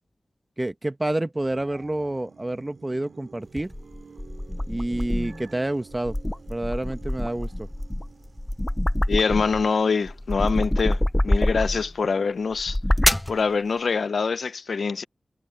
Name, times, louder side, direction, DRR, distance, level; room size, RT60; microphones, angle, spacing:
voice 1, 0.6-3.7 4.7-6.2 6.5-7.7, right 1 dB, 25° right, 1.1 m, -28 dB
sound 1, 1.4-12.4 12.8-12.9, right 4 dB, 85° right, 2.7 m, -51 dB
sound 2, 3.6-5.4 5.9-9.7 10.1-11.9 12.5-13.4, left 1 dB, 15° left, 0.5 m, -25 dB
voice 2, 9.1-12.8 13.3-15.0, left 5 dB, 85° left, 0.7 m, -24 dB
wide cardioid pair, 85°, 0 cm